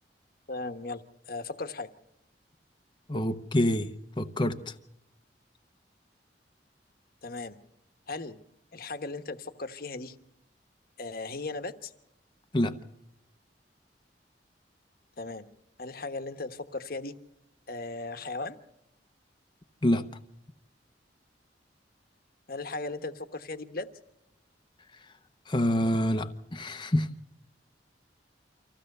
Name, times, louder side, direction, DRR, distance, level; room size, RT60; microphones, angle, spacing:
voice 1, 0.5-1.0 1.3-1.9 7.2-7.6 8.1-8.4 8.7-10.1 11.0-11.9 15.2-15.5 15.8-17.1 17.7-18.6 22.5-23.9, left 3 dB, 55° left, 1.2 m, -37 dB
voice 2, 3.1-3.9 4.2-4.7 12.5-12.7 19.8-20.0 25.5-27.1, left 1 dB, 25° left, 0.9 m, -26 dB
25.5 x 15.5 x 6.7 m
head